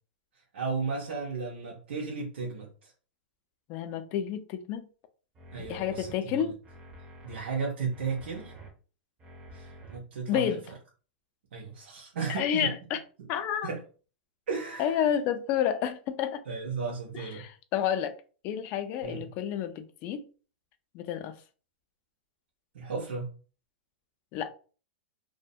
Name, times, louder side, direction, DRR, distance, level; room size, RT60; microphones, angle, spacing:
voice 1, 0.5-2.9 5.5-6.5 7.2-8.5 9.5-10.6 11.5-12.7 13.2-13.3 13.6-13.8 14.5-15.1 16.5-17.4 19.0-19.2 22.7-23.3, right 5 dB, 75° right, 0.6 m, -34 dB
voice 2, 3.7-4.9 5.6-6.6 10.3-10.6 12.3-13.0 13.3-13.7 14.8-16.4 17.1-18.2 18.4-20.2 20.9-21.3 24.3-24.5, left 9 dB, 35° left, 0.3 m, -30 dB
sound 1, 5.3-6.1 6.6-7.4 7.9-8.7 9.2-10.0 10.5-10.6, right 1 dB, 20° right, 0.5 m, -48 dB
2.2 x 2.1 x 2.6 m
hypercardioid pair, 140°, 6 cm